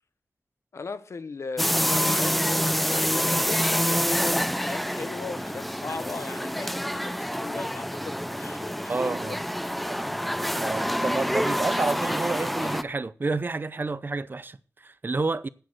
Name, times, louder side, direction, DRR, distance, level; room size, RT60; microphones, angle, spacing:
voice 1, 0.7-9.4, left 4 dB, 75° left, 0.8 m, -38 dB
sound 1, 1.6-12.8, equal, ahead, 0.5 m, -27 dB
voice 2, 8.9-9.4 9.9-10.0 10.6-15.5, right 3 dB, 45° right, 0.6 m, -29 dB
9.3 x 6.5 x 7.7 m
wide cardioid pair, 85°, 5 cm